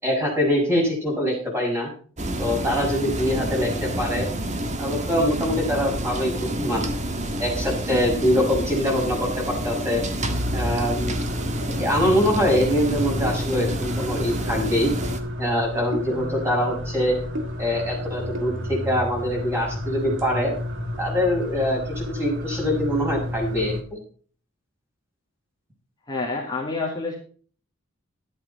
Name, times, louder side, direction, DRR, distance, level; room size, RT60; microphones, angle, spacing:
voice 1, 0.0-1.9 2.4-4.3 4.8-6.9 7.4-10.0 10.5-11.2 11.8-14.9 15.4-17.2 17.6-20.5 21.0-24.0, equal, 10° right, -1 dB, 6.5 m, -24 dB
sound 1, 2.2-15.2, right 1 dB, 35° right, 1.7 m, -29 dB
sound 2, 10.2-23.8, left 1 dB, 60° right, 2.3 m, -31 dB
voice 2, 26.1-27.2, left 3 dB, 20° left, -3 dB, 2.7 m, -28 dB
13.5 x 11.0 x 4.3 m, 0.43 s
head